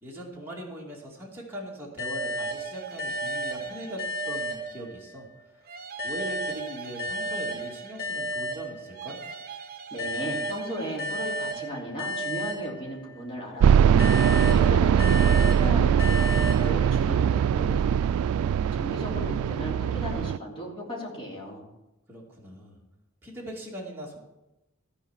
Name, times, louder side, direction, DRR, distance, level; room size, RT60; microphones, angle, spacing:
voice 1, 0.0-5.3 5.5-5.6 6.0-9.2 22.1-22.8 23.2-24.2, right 1 dB, 10° right, -4 dB, 2.2 m, -40 dB
sound 1, 2.0-5.3 6.0-9.3 10.0-13.3 14.0-17.3, equal, 45° left, 2.6 m, -33 dB
sound 2, 2.2-5.0 5.6-8.4 8.9-11.9, right 6 dB, 50° right, 0.8 m, -43 dB
voice 2, 9.9-18.2 18.7-21.7, equal, 25° left, -4 dB, 3.2 m, -36 dB
sound 3, 13.6-20.4, right 8 dB, 90° right, 0.3 m, -21 dB
14.5 x 4.9 x 7.3 m, 0.96 s
head